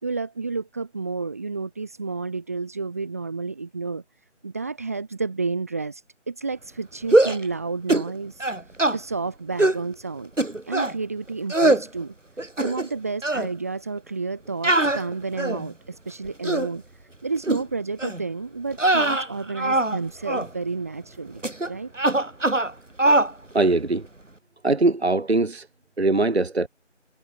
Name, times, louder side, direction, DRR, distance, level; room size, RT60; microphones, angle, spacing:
voice 1, 0.0-4.0 4.4-8.5 8.9-10.3 10.6-12.1 12.6-16.8 17.2-21.9, right 4 dB, 10° right, 4.3 m, -30 dB
sound 1, 7.0-7.5 7.9-8.1 8.4-9.0 9.6-9.8 10.4-10.9 11.5-11.8 12.4-13.0 13.2-13.5 14.6-15.7 16.2-16.7 17.4-17.6 18.0-18.2 18.7-20.0 20.3-20.5 21.4-21.7 22.0-22.7 23.0-23.3, right 2 dB, 85° right, 2.3 m, -21 dB
voice 2, 23.5-24.0 24.6-25.6 26.0-26.7, right 2 dB, 60° right, 1.0 m, -21 dB
figure-of-eight pair, 170°, 37 cm